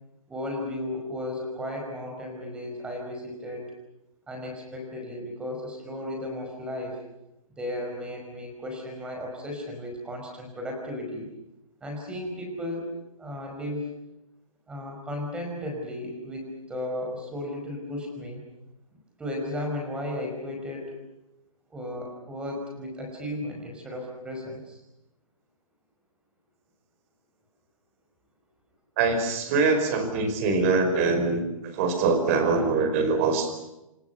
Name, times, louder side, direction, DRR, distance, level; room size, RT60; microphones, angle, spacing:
voice 1, 0.3-3.6 4.3-7.0 7.6-11.3 11.8-12.9 13.2-13.9 14.7-18.4 19.2-21.0 21.7-24.8, left 1 dB, 5° right, 2 dB, 5.5 m, -34 dB
voice 2, 29.0-31.4 31.7-33.6, right 4 dB, 25° right, 7 dB, 5.0 m, -23 dB
29.5 x 27.0 x 5.8 m, 0.91 s
hypercardioid pair, 170°, 18 cm